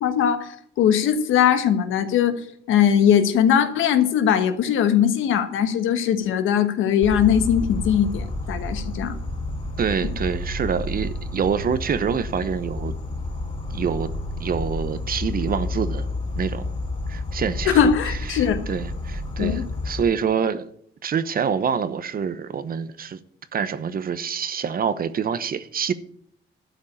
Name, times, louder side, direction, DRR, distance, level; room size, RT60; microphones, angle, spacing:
voice 1, 0.0-9.2 10.0-10.1 17.6-18.6 19.4-19.6, left 8 dB, 85° left, 1.3 m, -20 dB
Insect, 7.0-20.0, left 2 dB, 30° left, 3.9 m, -30 dB
voice 2, 9.8-12.9 13.7-14.1 14.4-16.1 16.4-16.7 17.1-17.8 18.3-20.7 21.0-23.2 23.5-25.9, right 7 dB, 45° right, 0.9 m, -26 dB
12.0 x 5.2 x 8.7 m
cardioid pair, 90°, 20 cm